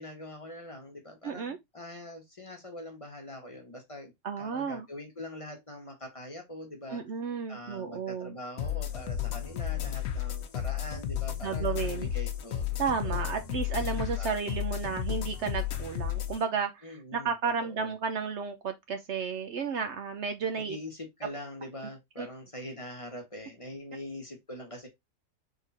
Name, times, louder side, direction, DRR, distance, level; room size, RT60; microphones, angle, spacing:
voice 1, 0.0-7.0 7.5-12.6 13.0-13.5 14.2-14.4 16.8-17.3 17.6-17.9 20.5-24.9, left 1 dB, 25° left, 1.1 m, -43 dB
voice 2, 1.2-1.6 4.2-4.9 6.9-8.3 11.4-12.1 12.8-20.8 22.2-22.3, right 6 dB, 60° right, 0.8 m, -33 dB
sound 1, 8.6-16.4, left 10 dB, 70° left, 1.2 m, -33 dB
3.7 x 3.6 x 4.0 m
omnidirectional pair, 1.5 m